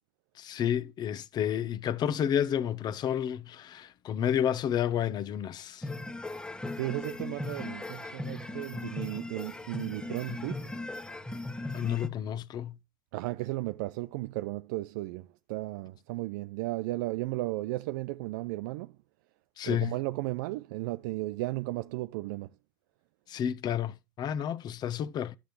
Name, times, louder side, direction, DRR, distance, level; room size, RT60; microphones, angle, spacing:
voice 1, 0.4-5.9 11.7-12.7 19.6-19.9 23.3-25.4, left 9 dB, 45° left, 1.0 m, -30 dB
sound 1, 5.8-12.1, left 2 dB, 10° left, 1.4 m, -38 dB
voice 2, 6.7-10.7 13.1-19.0 19.6-22.6, right 19 dB, 75° right, 0.5 m, -35 dB
11.5 x 7.2 x 3.2 m
supercardioid pair, 105°, 10 cm